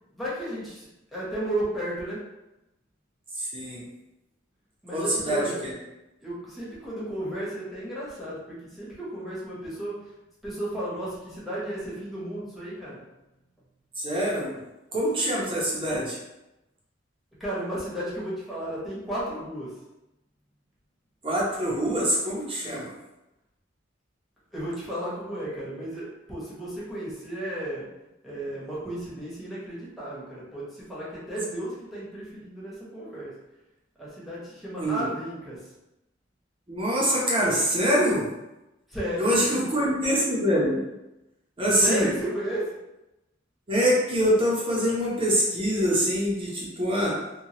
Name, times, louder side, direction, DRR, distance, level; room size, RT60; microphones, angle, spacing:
voice 1, 0.1-2.2 4.8-5.6 6.2-13.0 17.4-19.8 24.5-27.9 28.2-33.3 34.0-35.7 38.9-39.9 41.8-42.8, right 1 dB, ahead, -9 dB, 0.9 m, -33 dB
voice 2, 3.3-3.8 4.9-5.7 14.0-14.6 14.9-16.2 21.2-22.9 34.8-35.1 36.7-38.3 39.2-40.8 41.6-42.1 43.7-47.2, equal, 30° right, -5 dB, 0.6 m, -24 dB
3.0 x 2.2 x 2.7 m, 0.96 s
head